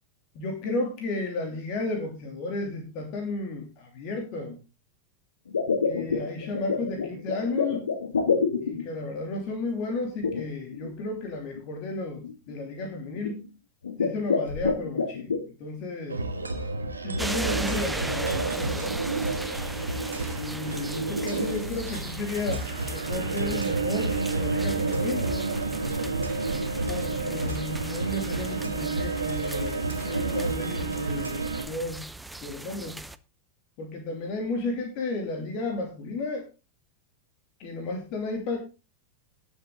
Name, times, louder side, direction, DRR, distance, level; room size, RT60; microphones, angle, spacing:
voice 1, 0.3-4.6 5.8-7.9 8.6-13.5 14.0-16.2 17.0-19.0 20.4-25.3 26.9-32.0 32.4-33.0 33.8-36.5 37.6-38.6, left 2 dB, 40° left, 2 dB, 3.0 m, -33 dB
sound 1, 5.5-9.1 10.2-10.9 11.6-11.7 12.2-12.5 13.1-13.5 13.8-15.4, left 5 dB, 70° left, 1.6 m, -27 dB
sound 2, 16.1-31.6, right 3 dB, 80° right, 1.7 m, -30 dB
sound 3, 17.2-33.2, right 2 dB, 5° right, 0.7 m, -38 dB
17.5 x 7.2 x 3.9 m, 0.31 s
figure-of-eight pair, 90°, 0 cm